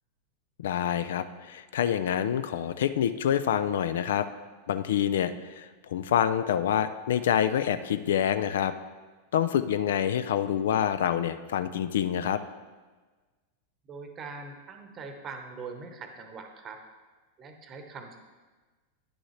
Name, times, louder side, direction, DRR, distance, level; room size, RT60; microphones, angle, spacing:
voice 1, 0.6-4.3 4.7-8.7 9.3-12.4, left 9 dB, 60° left, 12 dB, 0.3 m, -27 dB
voice 2, 13.8-16.8 17.4-18.2, right 4 dB, 30° right, 6 dB, 0.9 m, -42 dB
10.0 x 6.1 x 3.2 m, 1.3 s
figure-of-eight pair, 90°, 0 cm